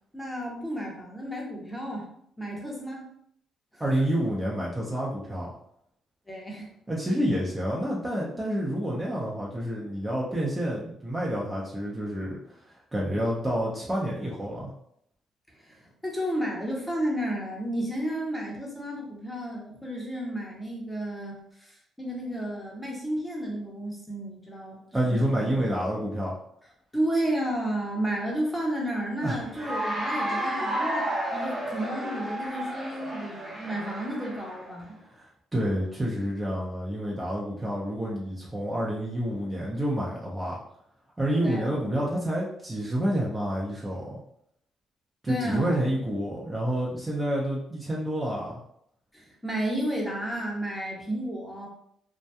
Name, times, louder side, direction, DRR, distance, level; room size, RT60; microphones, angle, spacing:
voice 1, 0.1-2.1 2.4-3.1 3.7-3.8 6.3-6.7 15.6-25.6 26.9-34.9 41.4-41.8 45.3-45.8 49.1-51.7, right 1 dB, 10° left, -2 dB, 0.9 m, -32 dB
voice 2, 3.8-5.5 6.9-12.4 12.7-14.7 24.9-26.4 29.2-29.4 35.1-40.6 41.2-44.2 45.2-48.6, equal, 20° right, -5 dB, 0.6 m, -28 dB
Cheering / Applause, 29.5-34.7, right 1 dB, 40° right, 1.0 m, -32 dB
2.7 x 2.2 x 2.2 m, 0.71 s
supercardioid pair, 65°, 0 cm